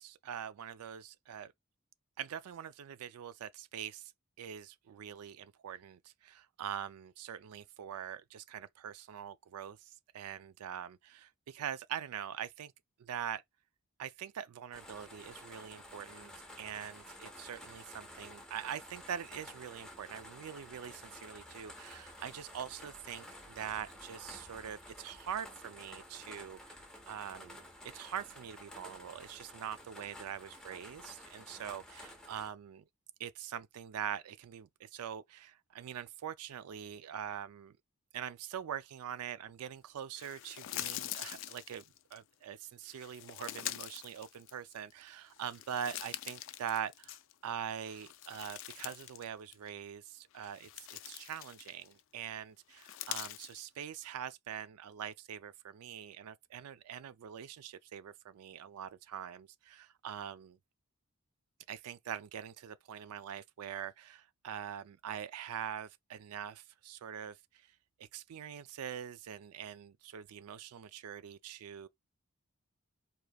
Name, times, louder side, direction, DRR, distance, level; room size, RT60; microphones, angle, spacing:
voice 1, 0.0-1.5 2.2-4.1 4.4-12.7 13.0-13.4 14.0-16.3 16.6-27.6 27.9-32.8 33.2-37.7 38.1-41.8 42.1-47.2 47.4-60.6 61.7-67.7 68.0-71.9, right 9 dB, 85° right, 0.4 m, -43 dB
sound 1, 14.7-32.5, left 1 dB, 5° left, 0.8 m, -52 dB
sound 2, 40.2-42.2 42.9-44.9 45.3-47.5 47.8-49.3 49.5-49.7 50.3-52.0 52.7-53.6, left 13 dB, 60° left, 0.3 m, -44 dB
4.8 x 2.9 x 2.3 m
head